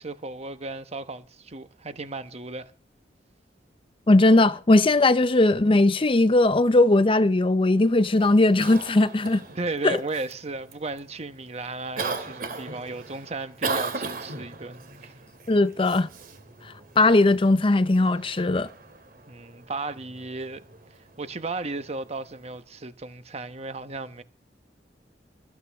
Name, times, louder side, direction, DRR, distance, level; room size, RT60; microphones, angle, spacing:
voice 1, 0.0-2.7 9.5-15.1 19.3-20.6 21.2-24.2, right 3 dB, 40° right, 1.1 m, -35 dB
voice 2, 4.1-9.4 9.8-10.0 15.5-16.1 17.0-18.7, left 2 dB, 30° left, 0.6 m, -19 dB
Cough, 8.1-22.6, right 4 dB, 55° right, 2.6 m, -38 dB
25.5 x 8.5 x 3.5 m
head